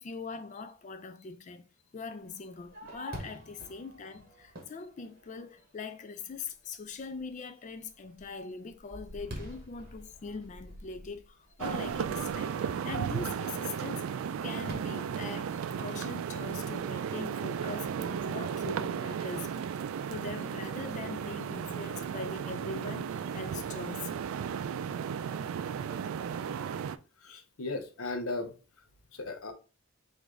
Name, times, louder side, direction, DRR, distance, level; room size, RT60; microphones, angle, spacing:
voice 1, 0.0-1.6 1.9-19.8 20.1-24.1, left 4 dB, 35° left, 0.3 m, -42 dB
Fireworks, 2.3-5.8 6.3-6.4 6.9-7.3 7.7-12.6 14.7-16.0, equal, 45° right, 1.3 m, -47 dB
sound 1, 11.6-27.0, right 7 dB, 75° right, 0.3 m, -35 dB
voice 2, 27.2-28.5 29.1-29.5, left 2 dB, 80° left, 0.8 m, -36 dB
4.9 x 2.6 x 3.6 m
head